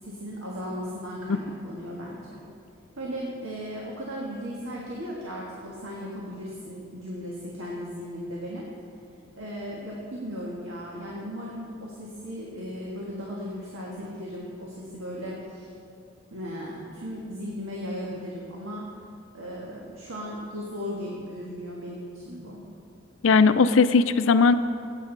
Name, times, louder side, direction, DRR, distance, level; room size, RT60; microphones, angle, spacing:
voice 1, 0.0-2.4 3.0-8.7 9.4-15.7 16.3-18.8 19.3-22.6, equal, 85° right, -4 dB, 1.7 m, -36 dB
voice 2, 23.2-24.5, left 4 dB, 75° left, 12 dB, 0.5 m, -18 dB
16.0 x 9.1 x 4.1 m, 2.5 s
head